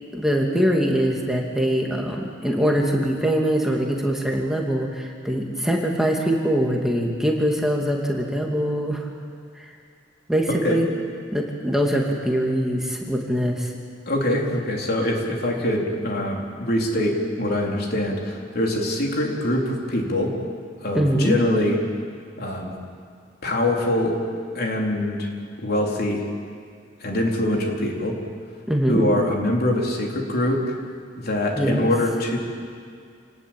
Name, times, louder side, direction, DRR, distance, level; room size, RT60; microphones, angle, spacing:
voice 1, 0.1-9.1 9.6-9.7 10.3-10.9 11.3-13.7 20.9-21.4 28.7-29.0 31.6-31.9, equal, 5° right, -1 dB, 2.5 m, -23 dB
voice 2, 14.1-20.4 20.8-21.8 22.4-22.8 23.4-24.2 24.5-25.3 25.6-26.2 27.0-28.2 28.9-30.6 31.2-32.4, left 1 dB, 55° left, 0 dB, 4.1 m, -23 dB
28.0 x 20.0 x 9.0 m, 2.2 s
head